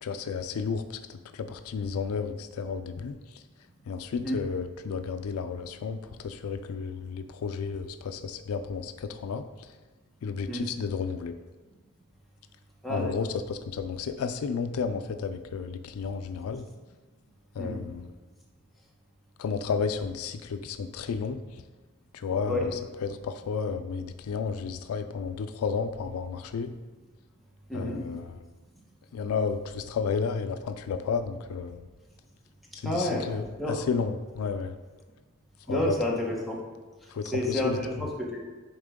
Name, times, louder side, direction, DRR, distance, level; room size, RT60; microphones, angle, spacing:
voice 1, 0.0-3.4 3.9-9.7 10.2-11.3 12.9-16.7 17.5-18.1 19.4-21.6 22.1-26.7 27.7-28.4 29.1-31.8 32.7-34.8 35.7-35.9 37.1-37.8, left 5 dB, 75° left, 9 dB, 0.4 m, -32 dB
voice 2, 12.8-13.1 17.6-17.8 22.5-22.7 27.7-28.0 32.8-33.8 35.7-36.6 37.2-38.4, left 1 dB, ahead, -3 dB, 1.0 m, -30 dB
8.8 x 3.6 x 3.6 m, 1.3 s
head